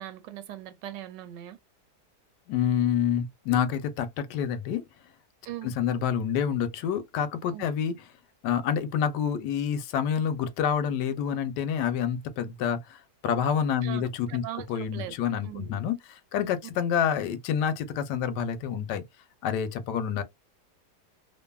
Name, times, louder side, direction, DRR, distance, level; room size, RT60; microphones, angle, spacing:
voice 1, 0.0-1.6 5.5-5.7 7.5-7.7 13.8-15.1 15.4-15.8, right 12 dB, 90° right, 1.2 m, -40 dB
voice 2, 2.5-4.9 5.6-8.0 8.4-14.4 14.7-16.0 16.3-19.0 19.4-20.2, left 8 dB, 80° left, 1.2 m, -28 dB
2.6 x 2.6 x 2.2 m
omnidirectional pair, 1.8 m